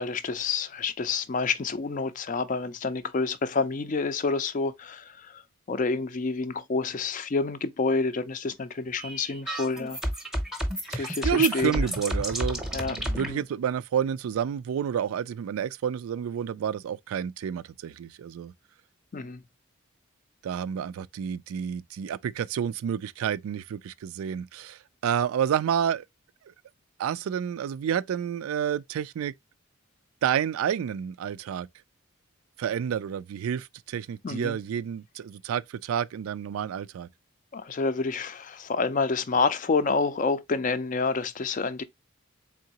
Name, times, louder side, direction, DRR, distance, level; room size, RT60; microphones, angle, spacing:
voice 1, 0.0-5.4 5.7-10.0 11.0-11.8 12.7-13.4 19.1-19.4 34.2-34.6 37.5-41.8, left 4 dB, 40° left, 0.4 m, -28 dB
sound 1, 9.0-13.3, equal, ahead, 0.7 m, -31 dB
voice 2, 10.9-18.5 20.4-26.1 27.0-29.3 30.2-31.7 32.6-37.1, right 8 dB, 90° right, 0.3 m, -29 dB
3.8 x 3.6 x 2.8 m
head